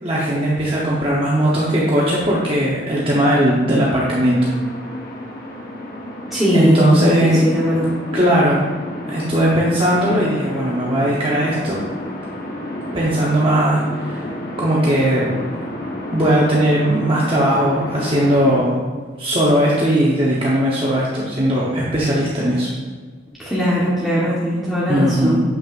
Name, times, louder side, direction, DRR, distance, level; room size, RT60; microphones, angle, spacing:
voice 1, 0.0-4.4 6.5-7.4 8.1-8.6 9.1-11.8 12.9-14.3 14.6-15.4 16.1-18.8 19.2-22.7 24.9-25.4, right 1 dB, 30° right, -6 dB, 0.8 m, -18 dB
sound 1, 3.9-18.6, left 1 dB, 50° left, 1.1 m, -31 dB
voice 2, 6.3-7.9 23.4-25.4, equal, ahead, -9 dB, 1.0 m, -19 dB
7.4 x 6.1 x 2.4 m, 1.5 s
head